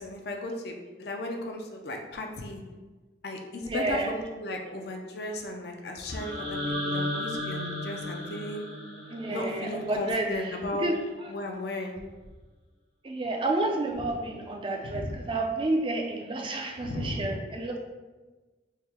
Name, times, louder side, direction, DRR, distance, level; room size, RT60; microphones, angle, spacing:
voice 1, 0.0-2.6 3.2-8.7 9.3-10.9 11.3-11.9 14.8-15.2 16.8-17.4, left 2 dB, 55° left, 2 dB, 0.4 m, -35 dB
voice 2, 3.6-4.1 9.1-11.3 13.0-17.8, right 2 dB, 25° right, 3 dB, 0.4 m, -30 dB
sound 1, 6.1-10.1, left 1 dB, 80° right, 1.1 m, -34 dB
3.5 x 2.1 x 4.3 m, 1.3 s
head